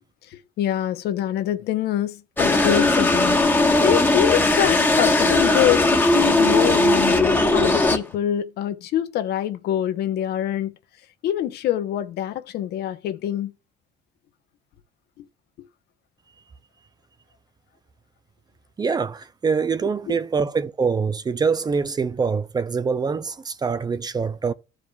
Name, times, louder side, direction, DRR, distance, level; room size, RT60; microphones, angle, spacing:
voice 1, 0.3-3.5 3.8-10.8 11.2-13.5 15.2-15.3 20.1-20.2, left 11 dB, 75° left, 0.9 m, -25 dB
sound 1, 2.4-8.0, left 2 dB, 10° left, 1.2 m, -18 dB
voice 2, 18.8-24.5, right 5 dB, 25° right, 0.5 m, -24 dB
14.5 x 4.9 x 2.3 m
cardioid pair, 110°, 17 cm